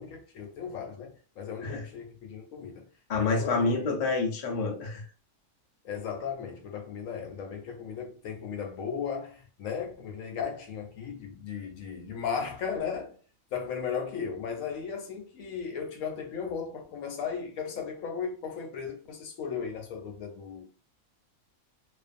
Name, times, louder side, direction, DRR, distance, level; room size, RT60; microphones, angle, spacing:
voice 1, 0.0-2.9 3.2-3.8 5.8-13.1 13.5-20.7, left 6 dB, 75° left, 1.0 m, -36 dB
voice 2, 3.1-5.0, left 4 dB, 50° left, 0.5 m, -28 dB
2.5 x 2.3 x 2.5 m
omnidirectional pair, 1.5 m